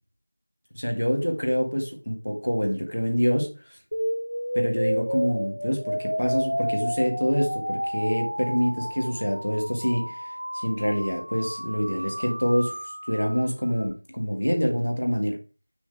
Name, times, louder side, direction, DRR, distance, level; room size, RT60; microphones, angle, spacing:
voice 1, 0.7-3.5 4.5-12.8 13.1-15.4, equal, 45° left, 1.8 m, -26 dB
sound 1, 3.9-13.9, equal, 70° right, 1.9 m, -31 dB
6.5 x 6.2 x 3.3 m
figure-of-eight pair, 180°, 0 cm